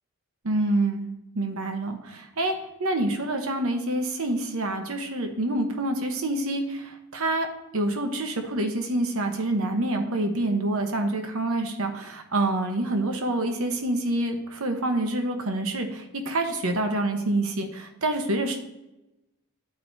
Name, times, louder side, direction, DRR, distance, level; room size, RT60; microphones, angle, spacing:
voice 1, 0.4-2.5 2.8-7.5 7.7-18.6, right 2 dB, 75° right, 5 dB, 0.9 m, -27 dB
11.5 x 4.5 x 2.7 m, 0.94 s
head